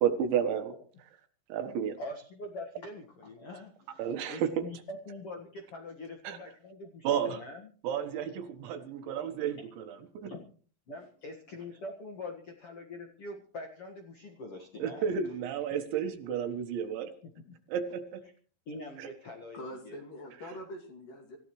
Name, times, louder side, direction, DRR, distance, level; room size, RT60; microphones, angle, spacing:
voice 1, 0.0-0.7 1.5-2.0 4.0-4.7 6.3-6.4 7.1-7.4 7.8-10.3 14.8-17.1 17.7-18.2 19.0-19.1, right 8 dB, 75° right, 7 dB, 3.6 m, -32 dB
voice 2, 2.0-6.9 7.2-7.7 10.3-10.4 10.9-15.0 18.6-20.0, left 2 dB, 65° left, 2 dB, 1.4 m, -43 dB
voice 3, 19.5-21.4, left 1 dB, 50° left, 3 dB, 3.7 m, -44 dB
26.5 x 15.0 x 3.2 m, 0.42 s
omnidirectional pair, 5.5 m